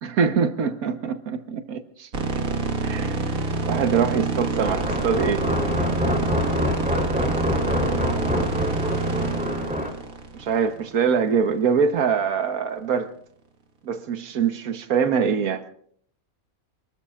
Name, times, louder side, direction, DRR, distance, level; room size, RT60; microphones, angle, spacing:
voice 1, 0.0-2.1 2.8-5.4 10.3-13.1 13.8-15.7, right 6 dB, 85° right, 1.5 m, -24 dB
sound 1, 2.1-11.3, right 3 dB, 70° right, 2.2 m, -27 dB
sound 2, 4.6-9.9, left 1 dB, 5° right, 3.4 m, -26 dB
28.0 x 20.5 x 2.5 m
omnidirectional pair, 1.5 m